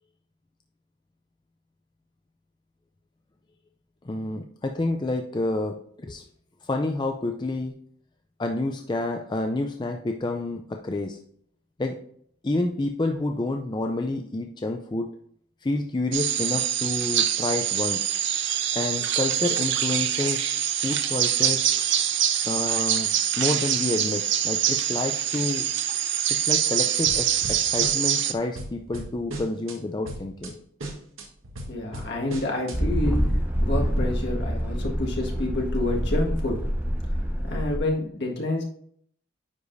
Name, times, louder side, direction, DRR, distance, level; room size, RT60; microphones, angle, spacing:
voice 1, 4.0-6.2 6.6-7.7 8.4-11.2 11.8-12.0 12.4-15.1 15.6-18.1 18.7-20.5 20.8-21.7 22.4-23.1 23.4-25.7 26.3-30.6, left 2 dB, 20° left, 4 dB, 0.4 m, -29 dB
sound 1, 16.1-28.3, right 10 dB, 60° right, 0.6 m, -25 dB
sound 2, 27.0-28.3 28.5-29.8 30.0-30.5 30.8-32.8, right 1 dB, 85° right, 1.6 m, -37 dB
voice 2, 31.7-36.6 37.4-38.6, left 2 dB, 60° left, 0 dB, 1.7 m, -28 dB
sound 3, 32.7-37.8, equal, 10° right, 0.9 m, -26 dB
9.6 x 5.0 x 2.6 m, 0.64 s
head